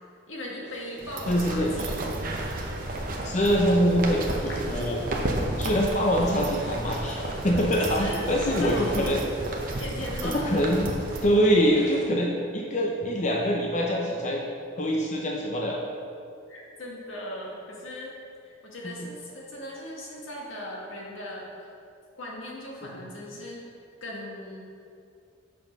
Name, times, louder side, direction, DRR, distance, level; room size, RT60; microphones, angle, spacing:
voice 1, 0.3-2.0 2.3-2.6 8.0-9.2 9.8-10.5 16.5-18.1 18.4-21.7 22.2-23.6 24.0-24.7, left 1 dB, 85° left, -3 dB, 1.7 m, -38 dB
sound 1, 0.6-12.1, left 1 dB, 55° left, 1.2 m, -45 dB
sound 2, 1.0-11.2, right 1 dB, 45° right, 0.8 m, -32 dB
voice 2, 1.3-1.7 3.2-5.0 5.6-9.2 10.2-14.4 14.8-15.8 18.8-19.1 22.8-22.9, equal, 35° left, -1 dB, 0.7 m, -24 dB
7.3 x 5.8 x 5.3 m, 2.4 s
head